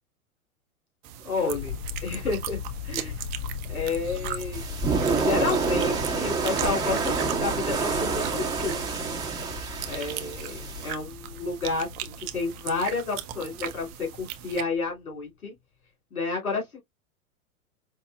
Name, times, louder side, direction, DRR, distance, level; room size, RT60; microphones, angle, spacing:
sound 1, 1.0-14.6, right 12 dB, 30° right, 0.5 m, -39 dB
voice 1, 1.2-2.6 2.8-3.2 3.7-4.7 5.2-8.8 9.8-15.5 16.1-16.8, left 4 dB, 80° left, 2.7 m, -30 dB
sound 2, 1.5-14.8, left 7 dB, 30° left, 0.7 m, -39 dB
sound 3, 4.5-10.9, right 4 dB, 10° right, 1.2 m, -28 dB
5.2 x 2.6 x 2.3 m
figure-of-eight pair, 105°, 43 cm